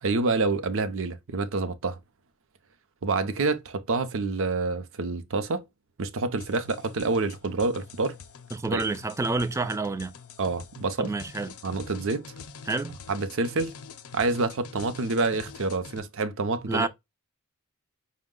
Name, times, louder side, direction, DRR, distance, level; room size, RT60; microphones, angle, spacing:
voice 1, 0.0-2.0 3.0-5.6 6.0-8.2 8.7-8.8 10.4-11.1 11.6-12.3 13.1-13.7 14.1-16.9, right 3 dB, 65° right, 0.6 m, -27 dB
sound 1, 6.4-16.0, left 6 dB, 70° left, 0.5 m, -46 dB
voice 2, 8.5-10.2 11.0-11.5 12.7-13.0 16.7-16.9, right 3 dB, 15° right, 0.3 m, -28 dB
5.2 x 2.1 x 3.6 m
head